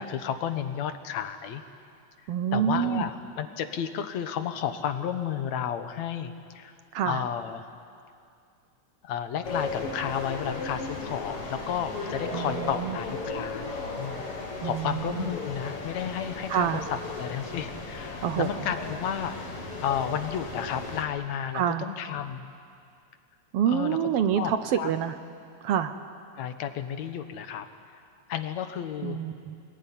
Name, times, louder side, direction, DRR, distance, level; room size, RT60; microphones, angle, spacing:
voice 1, 0.0-1.6 2.5-6.7 7.0-7.6 9.0-13.7 14.0-19.4 19.8-22.5 23.7-24.0 24.4-24.9 26.4-27.7 28.3-29.2, left 9 dB, 70° left, 9 dB, 2.3 m, -32 dB
voice 2, 2.3-3.1 6.9-7.2 12.3-13.0 14.6-15.3 16.5-16.8 18.2-18.6 21.5-21.9 23.5-25.2 25.6-26.0 29.0-29.6, right 9 dB, 70° right, 10 dB, 1.4 m, -27 dB
sound 1, 9.4-21.0, left 3 dB, 50° left, 3.4 m, -36 dB
25.5 x 20.0 x 10.0 m, 2.3 s
omnidirectional pair, 3.4 m